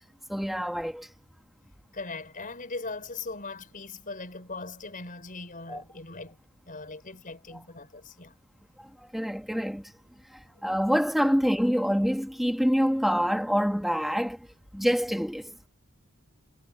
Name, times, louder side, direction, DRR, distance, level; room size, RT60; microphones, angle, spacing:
voice 1, 0.3-1.1 5.7-5.8 9.1-9.9 10.6-14.4 14.7-15.5, equal, ahead, 1.7 m, -26 dB
voice 2, 1.9-6.4 6.7-8.4, left 3 dB, 40° left, 6.0 m, -39 dB
head